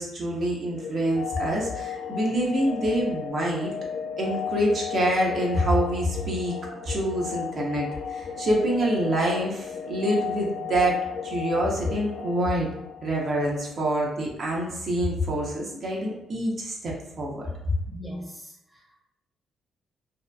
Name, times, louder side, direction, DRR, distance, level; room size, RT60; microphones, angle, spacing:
voice 1, 0.0-3.7 4.2-6.5 6.8-11.0 11.2-12.7 13.0-17.5, right 1 dB, 50° right, -3 dB, 0.6 m, -26 dB
sound 1, 0.8-13.5, left 7 dB, 60° left, 0.5 m, -34 dB
voice 2, 17.9-19.0, equal, 5° left, -2 dB, 0.6 m, -40 dB
2.7 x 2.2 x 2.2 m, 0.83 s
cardioid pair, 90°, 0 cm